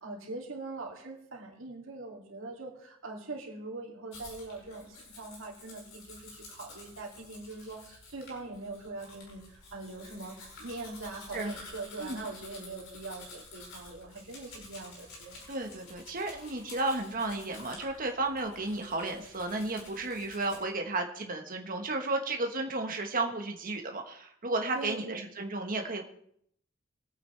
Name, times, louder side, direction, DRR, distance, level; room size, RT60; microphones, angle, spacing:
voice 1, 0.0-15.4 24.7-25.2, right 3 dB, 75° right, -2 dB, 2.6 m, -42 dB
Domestic sounds home sounds, 4.1-20.6, left 2 dB, 85° left, 5.5 m, -50 dB
voice 2, 15.5-26.1, right 2 dB, 45° right, 3 dB, 1.3 m, -33 dB
24.0 x 8.9 x 3.3 m, 0.69 s
head